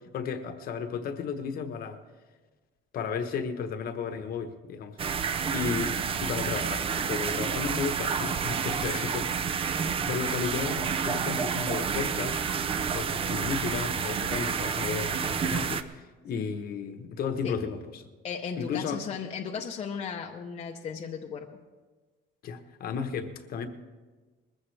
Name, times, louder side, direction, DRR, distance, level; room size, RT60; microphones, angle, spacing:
voice 1, 0.1-2.0 2.9-5.0 5.5-12.4 12.9-18.1 18.6-19.0 22.4-23.7, left 6 dB, 50° left, 8 dB, 1.0 m, -34 dB
sound 1, 5.0-15.8, right 6 dB, 30° right, 0.5 m, -29 dB
voice 2, 8.8-9.2 17.4-17.5 18.2-21.5, left 6 dB, 30° left, 1 dB, 0.7 m, -36 dB
21.0 x 14.5 x 3.3 m, 1.3 s
cardioid pair, 175°, 20 cm